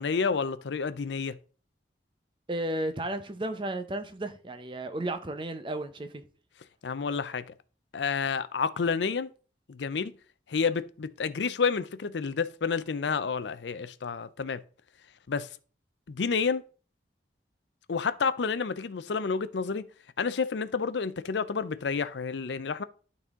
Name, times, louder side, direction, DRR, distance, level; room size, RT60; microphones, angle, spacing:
voice 1, 0.0-1.4 6.8-7.5 7.9-9.3 9.7-10.1 10.5-14.6 15.3-15.5 16.1-16.6 17.9-19.9 20.2-22.8, left 5 dB, 80° left, 0.5 m, -29 dB
voice 2, 2.5-6.2, right 1 dB, 25° right, 0.7 m, -33 dB
12.0 x 4.2 x 3.6 m
head